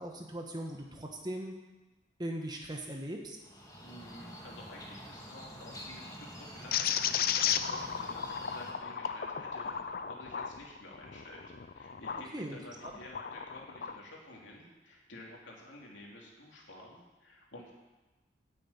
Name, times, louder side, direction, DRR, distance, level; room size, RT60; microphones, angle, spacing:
voice 1, 0.0-1.5 2.2-3.4 12.3-12.6, right 1 dB, 20° right, 1 dB, 1.4 m, -39 dB
Killdear and Red-winged Blackbirds chirping, 3.4-8.7, equal, 20° left, 1.8 m, -47 dB
voice 2, 3.8-17.7, left 1 dB, 85° left, -2 dB, 3.0 m, -51 dB
sound 1, 6.7-12.3 12.8-14.0, left 8 dB, 50° left, 0.5 m, -34 dB
8.7 x 8.6 x 8.8 m, 1.1 s
head